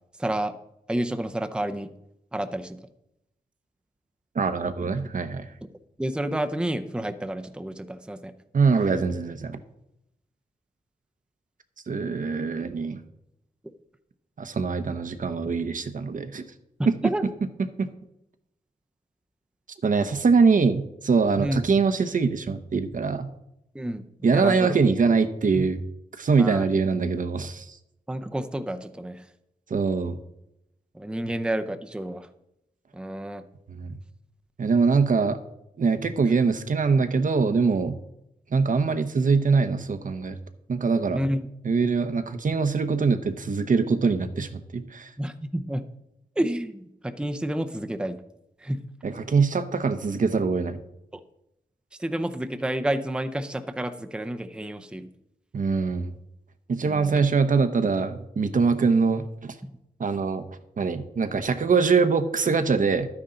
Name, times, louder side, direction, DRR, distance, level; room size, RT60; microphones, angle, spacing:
voice 1, 0.2-0.5 0.9-1.9 2.3-2.8 6.0-8.3 16.8-17.2 21.4-21.6 23.7-24.0 24.3-24.7 26.4-26.7 28.1-29.2 30.9-32.3 32.9-33.4 41.1-41.4 45.2-45.8 46.4-48.2 48.6-48.8 52.0-55.1 56.8-57.2, right 1 dB, 5° right, 9 dB, 0.6 m, -29 dB
voice 2, 4.3-5.5 8.5-9.6 11.9-13.0 14.4-16.4 16.9-17.0 17.8-17.9 19.8-23.3 24.2-25.8 26.2-27.8 29.7-30.2 33.8-33.9 34.6-35.4 35.8-38.0 38.5-40.4 40.7-41.2 41.6-45.1 49.0-50.8 55.5-56.1 56.7-59.5 60.0-60.4 60.8-63.1, right 4 dB, 60° right, 9 dB, 0.8 m, -23 dB
12.5 x 9.7 x 3.9 m, 0.82 s
wide cardioid pair, 120°, 15 cm